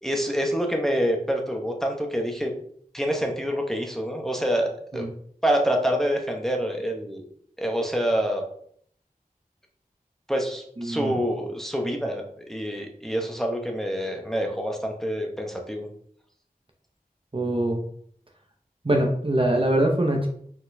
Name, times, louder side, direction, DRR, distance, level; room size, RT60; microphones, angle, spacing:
voice 1, 0.0-2.5 2.9-5.0 5.4-7.2 7.6-8.4 10.3-12.2 12.5-15.9, equal, ahead, 1 dB, 0.8 m, -26 dB
voice 2, 10.8-11.2 17.3-17.8 18.8-20.3, right 1 dB, 35° right, 2 dB, 0.7 m, -23 dB
4.2 x 4.2 x 2.7 m, 0.62 s
wide cardioid pair, 45°, 16 cm